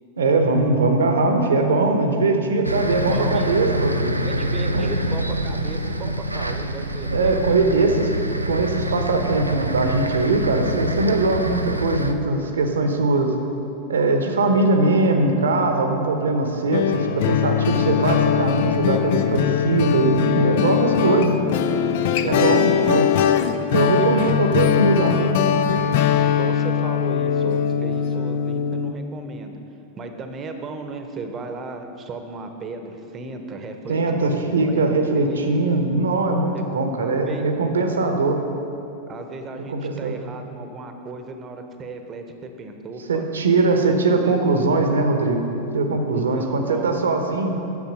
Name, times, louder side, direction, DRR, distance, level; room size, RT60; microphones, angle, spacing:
voice 1, 0.2-4.1 4.7-4.9 7.1-8.1 8.5-13.3 13.9-21.3 22.3-23.0 23.7-25.4 33.9-38.4 39.7-40.2 43.1-45.4 45.7-47.5, right 3 dB, 65° right, 5 dB, 0.9 m, -21 dB
sound 1, 2.6-12.1, equal, 85° right, 0.5 m, -26 dB
voice 2, 2.9-3.7 4.3-7.7 20.3-20.5 20.8-20.9 22.1-23.0 24.0-24.7 26.2-29.6 30.0-35.5 37.0-37.4 39.1-43.3 46.1-46.9, right 3 dB, 25° right, 6 dB, 0.9 m, -35 dB
sound 2, 16.7-28.9, left 8 dB, 50° left, 0.4 m, -21 dB
9.6 x 7.0 x 5.3 m, 2.9 s
figure-of-eight pair, 90°, 0 cm